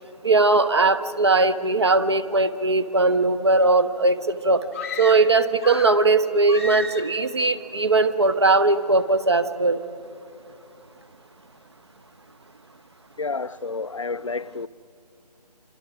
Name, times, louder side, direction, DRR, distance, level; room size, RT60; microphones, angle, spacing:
voice 1, 0.2-4.6 5.0-9.8, right 3 dB, 40° right, 1.0 m, -19 dB
sound 1, 4.7-6.1 6.5-7.3, left 2 dB, 20° left, 0.8 m, -33 dB
voice 2, 13.2-14.7, left 4 dB, 50° left, 0.5 m, -30 dB
26.5 x 26.5 x 6.1 m
figure-of-eight pair, 160°, 21 cm